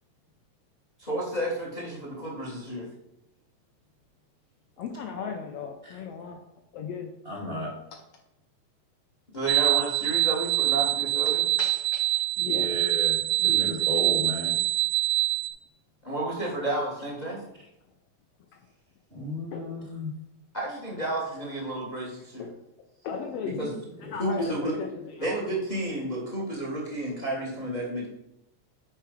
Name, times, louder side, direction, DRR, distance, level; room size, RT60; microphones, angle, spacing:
voice 1, 1.0-2.9 9.3-11.4 16.0-17.4 20.5-22.5 23.4-23.7 24.2-24.8 25.1-28.1, right 1 dB, 35° left, -2 dB, 0.6 m, -31 dB
voice 2, 4.8-6.4 6.7-7.1 7.9-8.0 11.3-12.7 13.4-13.7 18.5-18.6 19.5-19.8 22.4-22.6 23.0-23.8 24.1-25.4 27.0-27.1, left 6 dB, 80° left, 4 dB, 1.4 m, -37 dB
voice 3, 7.2-7.7 12.4-14.6 19.1-20.1 24.0-24.1, left 1 dB, 20° right, -4 dB, 1.7 m, -34 dB
sound 1, 9.5-15.5, right 14 dB, 80° right, 1.4 m, -25 dB
9.8 x 3.4 x 5.1 m, 0.86 s
omnidirectional pair, 3.5 m